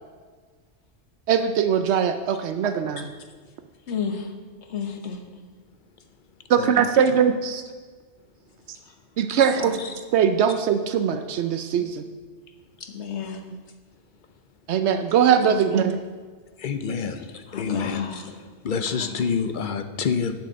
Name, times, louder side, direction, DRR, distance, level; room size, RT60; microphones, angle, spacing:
voice 1, 1.3-3.1 6.5-7.6 9.2-9.7 10.1-12.0 14.7-16.0, right 8 dB, 80° right, 8 dB, 0.9 m, -21 dB
voice 2, 3.9-4.3 4.6-5.2 8.9-9.0 9.6-9.9 12.8-13.4 15.4-15.8 17.0-17.1 17.5-18.4 18.9-19.3, left 6 dB, 85° left, 5 dB, 1.4 m, -33 dB
voice 3, 16.6-18.0 18.6-20.3, left 6 dB, 55° left, 9 dB, 0.7 m, -27 dB
8.4 x 6.2 x 7.6 m, 1.5 s
omnidirectional pair, 1.1 m